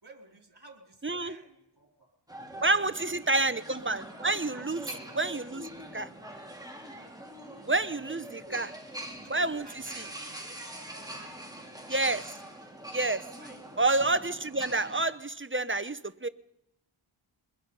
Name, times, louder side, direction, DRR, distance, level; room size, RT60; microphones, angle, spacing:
voice 1, 0.0-2.1 2.6-3.1 3.5-3.8 4.4-4.7 7.4-7.7 8.3-11.3 13.4-13.6, right 2 dB, 50° right, 2 dB, 4.2 m, -54 dB
voice 2, 1.0-1.3 2.6-4.8 5.1-6.1 7.7-8.7 9.3-9.7 9.9-10.0 11.9-12.3 12.9-13.3 13.8-16.3, right 2 dB, 25° right, 13 dB, 0.8 m, -29 dB
sound 1, 2.3-15.1, right 1 dB, 5° right, 3.3 m, -44 dB
23.5 x 21.5 x 5.5 m, 0.84 s
wide cardioid pair, 50°, 50 cm